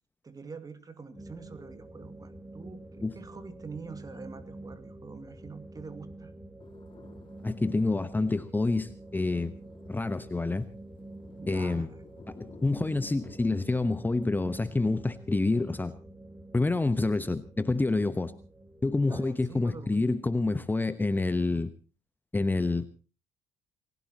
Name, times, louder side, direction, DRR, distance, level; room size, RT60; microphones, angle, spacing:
voice 1, 0.2-6.3 11.4-12.1 19.0-20.1, right 4 dB, 30° right, 10 dB, 2.3 m, -45 dB
sound 1, 1.2-20.6, right 1 dB, 10° right, 1.9 m, -48 dB
sound 2, 6.6-13.6, left 4 dB, 40° left, 4.7 m, -56 dB
voice 2, 7.4-9.5 9.9-10.7 11.5-11.9 12.6-15.9 16.5-18.3 18.8-21.7 22.3-22.9, left 3 dB, 15° left, 12 dB, 1.0 m, -27 dB
29.0 x 16.0 x 3.0 m, 0.35 s
hypercardioid pair, 55°, 13 cm